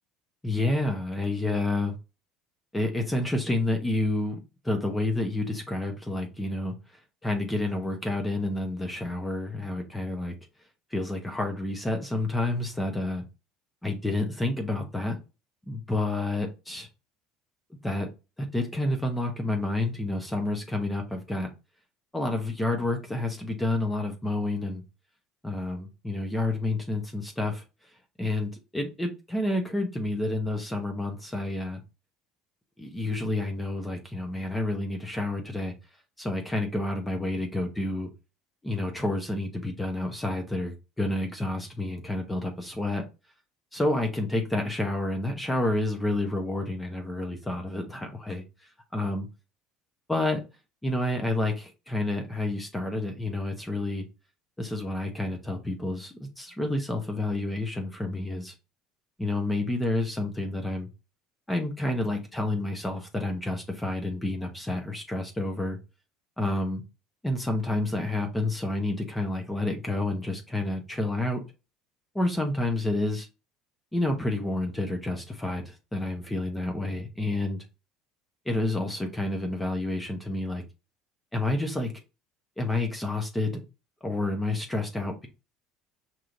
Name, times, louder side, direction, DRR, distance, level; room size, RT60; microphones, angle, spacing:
voice 1, 0.4-1.9 2.7-4.4 4.6-6.7 7.2-10.3 10.9-13.2 13.8-15.2 15.7-16.9 17.8-18.1 18.4-21.5 22.1-24.8 25.4-27.6 28.2-31.8 32.8-35.7 36.2-38.1 38.6-43.0 43.7-48.4 48.9-49.3 50.1-50.4 50.8-54.0 54.6-58.5 59.2-60.9 61.5-65.8 66.4-66.8 67.2-71.4 72.1-73.3 73.9-77.6 78.5-80.6 81.3-81.9 82.6-83.6 84.0-85.3, left 2 dB, 10° left, 0.9 m, -29 dB
4.8 x 3.0 x 2.5 m
supercardioid pair, 90°, 0 cm